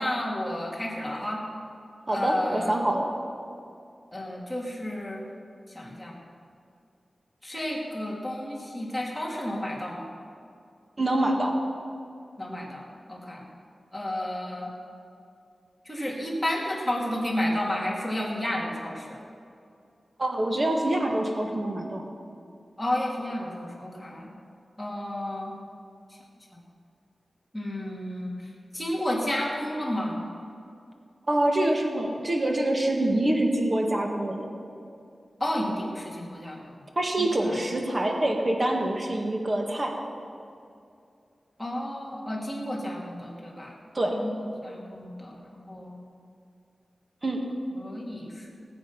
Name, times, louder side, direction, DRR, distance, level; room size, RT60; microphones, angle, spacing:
voice 1, 0.0-1.4 2.1-2.8 4.1-5.2 5.7-6.1 7.4-10.1 12.4-12.8 13.1-13.5 13.9-14.7 15.9-19.2 22.8-24.3 24.8-25.6 27.5-28.4 28.7-30.2 35.4-36.6 37.2-37.3 41.6-43.7 44.1-45.9 47.8-48.5, left 1 dB, 5° left, -3 dB, 2.9 m, -31 dB
voice 2, 2.1-3.1 11.0-11.5 20.2-22.0 31.3-34.5 37.0-39.9 43.9-44.2 47.2-47.4, right 1 dB, 35° right, 1 dB, 1.8 m, -25 dB
19.5 x 8.0 x 5.9 m, 2.5 s
wide cardioid pair, 110°, 0 cm